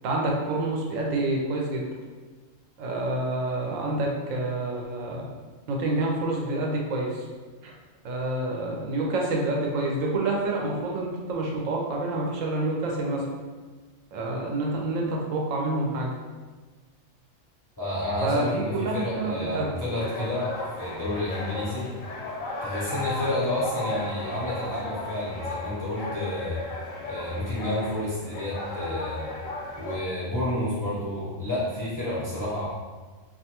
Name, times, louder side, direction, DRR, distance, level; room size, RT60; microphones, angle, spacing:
voice 1, 0.0-1.9 2.8-5.3 5.7-7.3 7.6-7.7 8.0-13.3 14.1-16.1 18.2-19.7, right 2 dB, 80° right, -1 dB, 0.9 m, -28 dB
voice 2, 17.8-21.9 22.6-26.6 27.1-29.3 29.8-32.7, left 1 dB, 30° left, -10 dB, 0.4 m, -30 dB
sound 1, 19.9-30.0, left 2 dB, 90° left, 1.0 m, -35 dB
2.5 x 2.3 x 2.8 m, 1.4 s
omnidirectional pair, 1.4 m